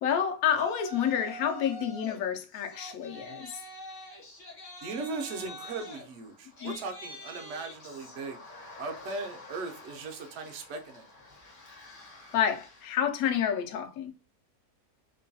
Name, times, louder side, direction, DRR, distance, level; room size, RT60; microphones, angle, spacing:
voice 1, 0.0-3.6 6.6-6.7 12.3-14.1, left 8 dB, 70° left, 0.9 m, -29 dB
Yell, 0.5-2.2 2.5-13.0, left 1 dB, 45° left, 0.7 m, -46 dB
voice 2, 4.8-8.4 8.8-11.1, right 3 dB, 65° right, 0.7 m, -38 dB
2.9 x 2.2 x 2.6 m
omnidirectional pair, 1.7 m